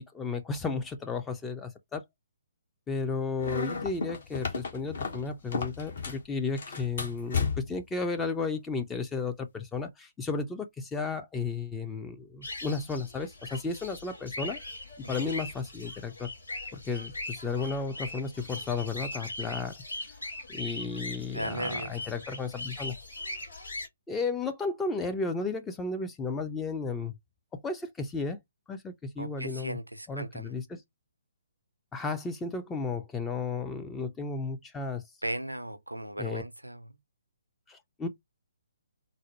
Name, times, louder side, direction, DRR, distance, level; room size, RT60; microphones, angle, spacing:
voice 1, 0.0-2.0 2.9-14.6 15.1-16.3 16.7-19.7 20.5-23.0 24.1-27.1 27.6-28.4 28.7-29.8 30.1-30.8 31.9-35.0 36.2-36.4 37.7-38.1, left 4 dB, 10° left, 0.5 m, -33 dB
sound 1, 3.4-6.3 6.6-7.9, left 5 dB, 50° left, 1.2 m, -33 dB
sound 2, 12.4-23.9, left 2 dB, 70° left, 2.5 m, -40 dB
voice 2, 21.3-22.0 29.2-30.5 35.2-37.0, right 1 dB, 85° right, 0.6 m, -37 dB
4.0 x 2.1 x 2.9 m
figure-of-eight pair, 130°, 0 cm